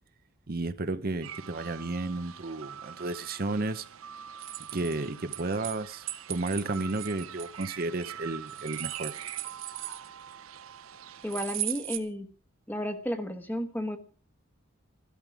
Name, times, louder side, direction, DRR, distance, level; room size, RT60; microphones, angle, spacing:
voice 1, 0.5-3.9 4.7-9.1, right 2 dB, 45° right, 0.8 m, -32 dB
sound 1, 1.2-11.5, right 9 dB, 85° right, 0.7 m, -45 dB
sound 2, 4.4-5.8 6.1-8.0 8.5-10.3 11.3-12.0, right 14 dB, 65° right, 1.4 m, -37 dB
voice 2, 11.2-12.3 12.7-14.0, equal, 10° left, 1.3 m, -32 dB
15.0 x 13.0 x 4.9 m
head